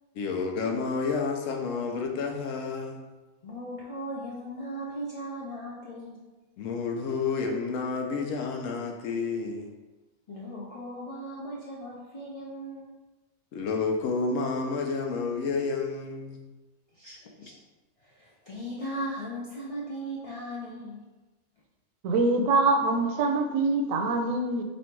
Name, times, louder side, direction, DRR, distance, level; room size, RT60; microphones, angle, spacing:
voice 1, 0.1-3.0 6.6-9.7 13.5-16.4 17.0-17.2, left 4 dB, 80° left, 3 dB, 1.0 m, -30 dB
voice 2, 3.4-6.2 10.3-12.9 16.9-17.5 18.0-21.0, equal, 60° left, -5 dB, 0.3 m, -38 dB
voice 3, 22.0-24.6, right 3 dB, 90° right, 4 dB, 1.0 m, -24 dB
3.2 x 2.6 x 4.4 m, 1.1 s
omnidirectional pair, 1.3 m